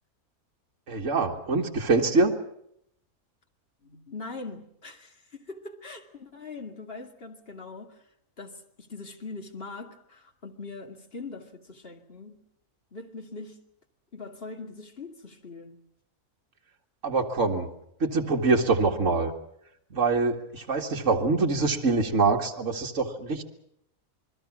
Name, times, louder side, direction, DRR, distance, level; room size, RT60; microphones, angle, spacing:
voice 1, 0.9-2.3 17.0-17.7 18.0-19.3 19.9-23.4, right 3 dB, 55° right, 2.3 m, -24 dB
voice 2, 3.8-8.1 8.4-12.4 12.9-13.6 14.1-15.8, left 3 dB, 40° left, 2.6 m, -42 dB
28.0 x 21.0 x 6.2 m
omnidirectional pair, 1.5 m